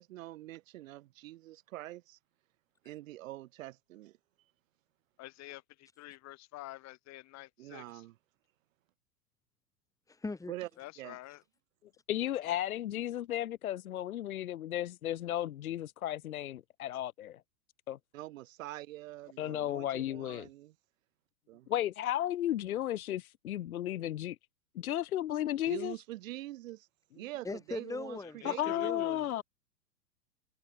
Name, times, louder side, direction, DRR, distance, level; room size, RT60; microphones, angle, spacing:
voice 1, 0.0-2.2 2.8-4.2 7.6-8.1 10.5-10.7 11.0-11.2 18.1-20.7 21.5-21.7 25.7-26.9 27.1-29.0, right 16 dB, 50° right, 6.3 m, -45 dB
voice 2, 5.2-8.0 10.8-11.4 28.2-29.1, left 18 dB, 35° left, 6.9 m, -49 dB
voice 3, 10.1-10.5 27.4-29.3, left 3 dB, 5° left, 3.0 m, -40 dB
voice 4, 12.1-17.4 17.9-18.0 19.4-20.5 21.7-24.4 24.7-25.9 28.4-29.4, left 12 dB, 60° left, 1.5 m, -34 dB
figure-of-eight pair, 105°, 49 cm